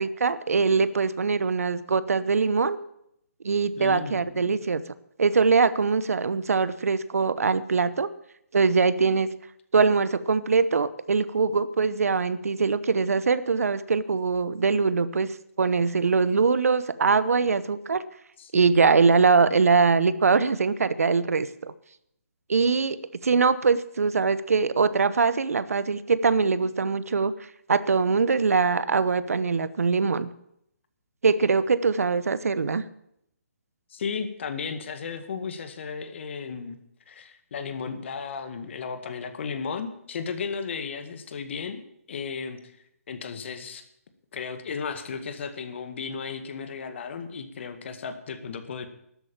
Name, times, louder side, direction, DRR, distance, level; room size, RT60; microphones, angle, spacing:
voice 1, 0.0-2.8 3.4-4.8 5.2-8.1 8.5-9.3 9.7-15.3 15.6-18.0 18.5-21.7 22.5-23.0 23.2-27.3 27.7-30.3 31.2-32.8, right 4 dB, 75° right, 16 dB, 0.9 m, -22 dB
voice 2, 3.8-4.6 18.4-18.8 33.9-36.8 37.1-41.8 42.1-42.6 43.1-43.8 44.3-48.9, left 5 dB, 50° left, 9 dB, 1.9 m, -34 dB
12.5 x 9.0 x 8.8 m, 0.75 s
figure-of-eight pair, 145°, 8 cm